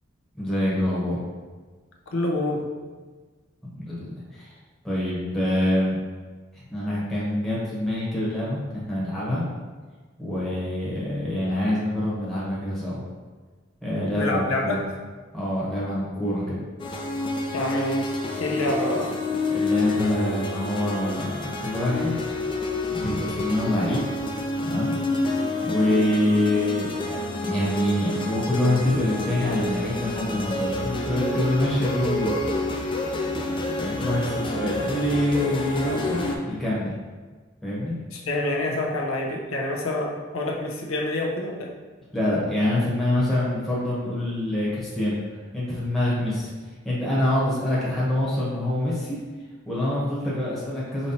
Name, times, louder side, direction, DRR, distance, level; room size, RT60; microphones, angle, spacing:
voice 1, 0.4-1.2 3.7-4.5 4.8-6.0 6.7-9.4 10.2-13.0 13.8-14.8 15.3-16.6 19.5-22.2 22.9-24.0 24.6-25.0 25.6-32.4 33.8-36.9 37.6-37.9 42.1-45.2 45.5-46.5 46.8-49.2 49.7-51.1, left 1 dB, ahead, -9 dB, 0.9 m, -25 dB
voice 2, 2.1-2.7 14.2-14.8 17.5-19.2 38.1-41.7, left 1 dB, 90° left, 0 dB, 0.8 m, -27 dB
sound 1, 16.8-36.4, left 2 dB, 25° left, 0.4 m, -28 dB
5.3 x 3.0 x 2.8 m, 1.4 s
head